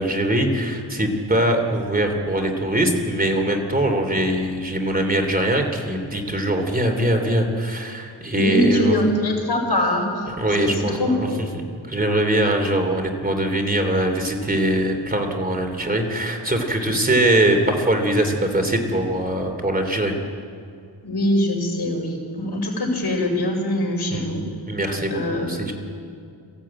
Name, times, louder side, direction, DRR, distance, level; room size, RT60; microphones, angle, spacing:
voice 1, 0.0-9.0 10.3-11.3 11.9-20.2 24.1-24.3 24.7-25.7, right 1 dB, 20° right, 4 dB, 3.3 m, -22 dB
voice 2, 8.3-10.2 10.6-11.4 21.0-24.4 25.1-25.7, left 1 dB, 55° left, 1 dB, 5.7 m, -23 dB
23.0 x 15.0 x 8.9 m, 2.4 s
wide cardioid pair, 80°, 45 cm